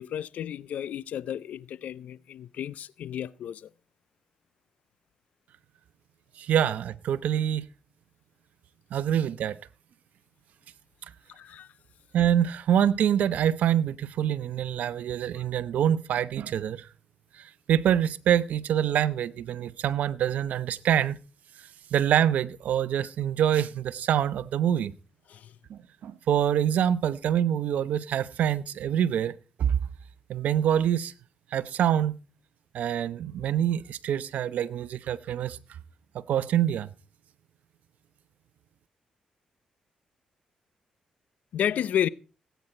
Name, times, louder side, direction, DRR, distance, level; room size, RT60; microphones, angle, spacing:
voice 1, 0.0-3.7 11.3-11.7 15.4-15.5 23.0-23.1 25.3-25.5 41.5-42.1, left 10 dB, 75° left, 0.6 m, -32 dB
voice 2, 6.4-7.7 8.9-9.6 12.1-16.9 17.7-21.2 21.9-24.9 25.7-29.3 29.6-29.8 30.3-31.1 31.5-32.2 32.7-35.6 36.3-36.9, right 10 dB, 80° right, 0.8 m, -25 dB
18.0 x 9.4 x 4.3 m
supercardioid pair, 60°, 3 cm